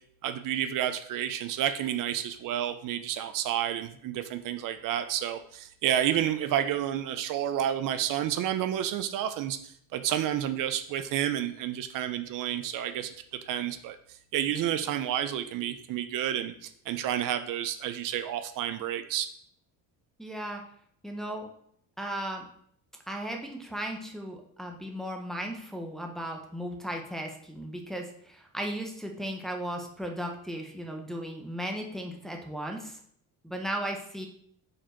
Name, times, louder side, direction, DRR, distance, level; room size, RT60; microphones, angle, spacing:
voice 1, 0.2-9.6 9.9-13.1 13.5-14.0 14.3-19.3, right 11 dB, 60° right, 9 dB, 0.6 m, -30 dB
voice 2, 20.2-20.6 21.0-21.5 22.0-22.4 23.1-33.0 33.4-34.3, right 1 dB, ahead, 1 dB, 0.7 m, -36 dB
4.9 x 4.4 x 4.4 m, 0.66 s
cardioid pair, 140°, 37 cm